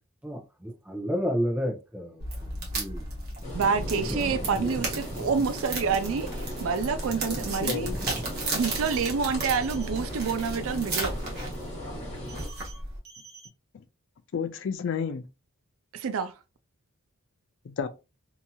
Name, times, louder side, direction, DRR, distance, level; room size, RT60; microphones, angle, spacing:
voice 1, 0.2-3.1 3.6-4.8 5.1-5.3 7.4-7.5 7.8-8.1, equal, 5° right, 0.7 m, -33 dB
fs-rippingbark, 2.2-13.0, right 2 dB, 45° right, 1.1 m, -35 dB
sound 1, 3.4-12.5, equal, 30° left, 1.4 m, -38 dB
voice 2, 3.5-6.3 6.6-7.9 8.5-11.2 15.9-16.3, right 5 dB, 65° right, 0.4 m, -27 dB
voice 3, 7.2-8.0 13.7-13.8 14.3-15.3 17.6-17.9, left 6 dB, 55° left, 0.3 m, -32 dB
sound 2, 8.6-9.1 9.4-9.9 12.3-12.8 13.0-13.5, right 5 dB, 85° right, 1.0 m, -48 dB
2.8 x 2.7 x 2.3 m
head